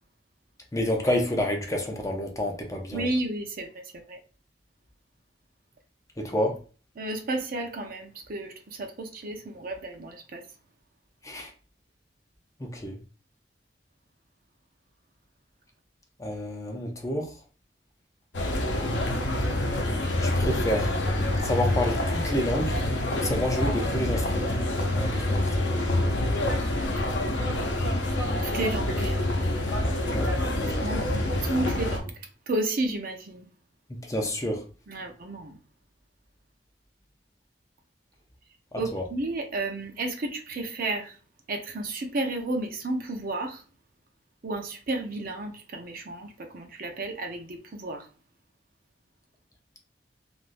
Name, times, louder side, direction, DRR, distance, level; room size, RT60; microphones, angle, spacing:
voice 1, 0.7-3.1 6.2-6.6 11.2-11.5 12.6-13.0 16.2-17.3 20.2-20.9 21.4-22.8 23.2-24.5 24.9-26.0 30.1-30.3 30.6-31.1 33.9-34.6 38.7-39.1, left 1 dB, 20° left, 0.6 m, -29 dB
voice 2, 2.9-3.7 3.9-4.2 7.0-10.4 26.9-27.0 28.4-29.2 30.8-31.0 31.4-32.1 32.5-33.5 34.9-35.6 38.8-41.2 41.5-43.6 44.4-48.1, right 2 dB, 55° right, 0.6 m, -32 dB
sound 1, 18.3-32.0, left 1 dB, 80° left, 0.7 m, -26 dB
3.4 x 2.5 x 2.5 m
head